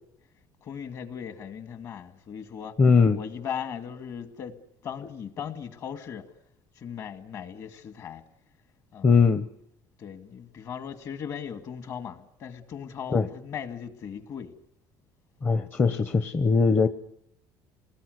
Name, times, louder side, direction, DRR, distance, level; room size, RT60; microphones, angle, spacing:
voice 1, 0.6-2.8 3.1-4.6 4.8-6.3 6.8-8.2 8.9-9.2 10.0-14.5, left 8 dB, 45° left, 2.2 m, -38 dB
voice 2, 2.8-3.2 9.0-9.5 13.1-13.3 15.4-16.9, left 5 dB, 25° left, 0.9 m, -20 dB
29.5 x 20.0 x 8.0 m
cardioid pair, 145°, 8 cm